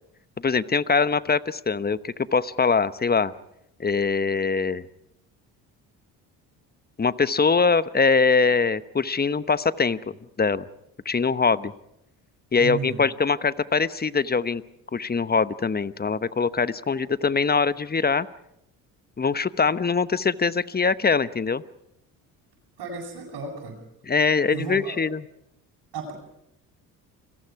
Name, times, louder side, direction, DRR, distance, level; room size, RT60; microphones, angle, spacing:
voice 1, 0.4-3.3 3.8-4.8 7.0-10.6 11.0-11.7 12.5-14.6 14.9-18.3 19.2-21.6 24.0-25.3, left 5 dB, 20° left, 15 dB, 1.0 m, -23 dB
voice 2, 12.6-13.0 22.8-23.8 24.5-25.0 25.9-26.1, right 5 dB, 60° right, -6 dB, 7.9 m, -33 dB
30.0 x 22.5 x 4.8 m, 0.79 s
hypercardioid pair, 60°, 43 cm